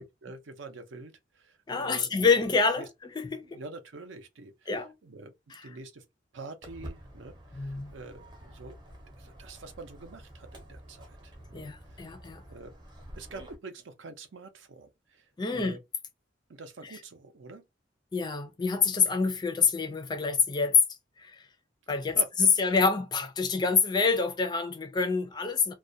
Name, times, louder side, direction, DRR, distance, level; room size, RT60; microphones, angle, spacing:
voice 1, 0.0-2.1 2.8-2.9 3.4-6.0 6.3-8.8 9.2-12.2 12.5-12.7 13.2-15.8 16.5-17.6 22.1-22.3 22.6-22.7, right 3 dB, 75° right, 0.5 m, -46 dB
voice 2, 1.7-3.6 4.7-4.9 5.5-5.7 7.5-7.9 11.5-12.4 15.4-15.8 18.1-21.5 21.9-25.7, left 5 dB, 20° left, 0.3 m, -27 dB
Walk footsteps, 6.6-13.5, right 1 dB, 25° right, 0.6 m, -48 dB
2.3 x 2.1 x 2.6 m
head